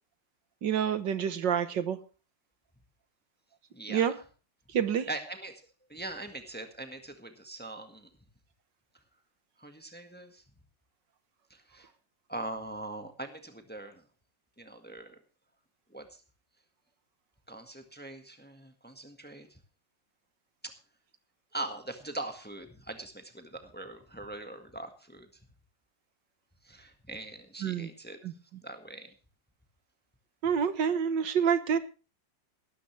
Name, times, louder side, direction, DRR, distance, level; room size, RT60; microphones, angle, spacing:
voice 1, 0.6-2.0 3.9-4.1 4.7-5.1 27.6-27.9 28.2-28.3 30.4-31.8, right 8 dB, 75° right, 11 dB, 1.9 m, -27 dB
voice 2, 3.7-4.1 5.1-5.6 5.9-8.1 9.6-10.4 11.5-11.9 12.3-14.0 14.6-15.2 15.9-16.2 17.5-19.6 20.6-20.8 21.5-25.3 26.6-28.2 28.6-29.1, right 2 dB, 5° left, 6 dB, 1.5 m, -42 dB
18.0 x 13.0 x 3.3 m, 0.34 s
omnidirectional pair, 2.0 m